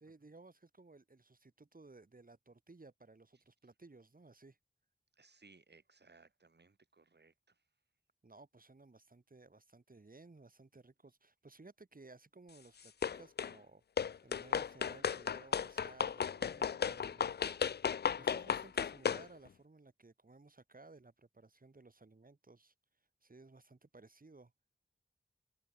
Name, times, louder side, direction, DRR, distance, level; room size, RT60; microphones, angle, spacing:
voice 1, 0.0-4.6 8.2-13.8 14.2-17.6 17.8-22.7 23.2-24.5, right 3 dB, 50° right, 6.0 m, -58 dB
voice 2, 5.2-7.6, right 4 dB, 65° right, 6.2 m, -64 dB
sound 1, 13.0-13.5 14.0-19.3, left 7 dB, 65° left, 0.4 m, -35 dB
open air
cardioid pair, 50°, 19 cm